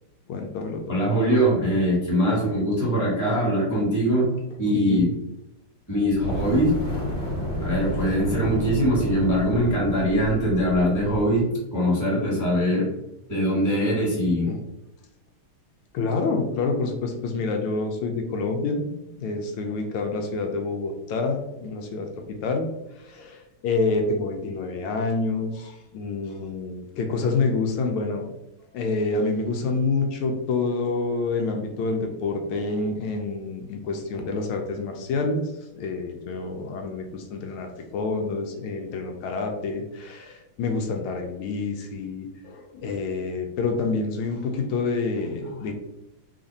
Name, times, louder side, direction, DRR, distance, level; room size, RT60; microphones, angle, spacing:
voice 1, 0.3-1.0 4.7-5.1 14.5-14.6 15.9-22.7 23.0-28.3 28.7-45.7, left 3 dB, 80° left, 3 dB, 1.4 m, -28 dB
voice 2, 0.9-4.3 4.6-5.1 5.9-6.8 7.6-12.9 13.3-14.5, equal, 10° left, -5 dB, 1.0 m, -22 dB
Fire, 6.1-11.4, equal, 30° left, 1.3 m, -30 dB
3.5 x 2.5 x 3.9 m, 0.91 s
omnidirectional pair, 2.4 m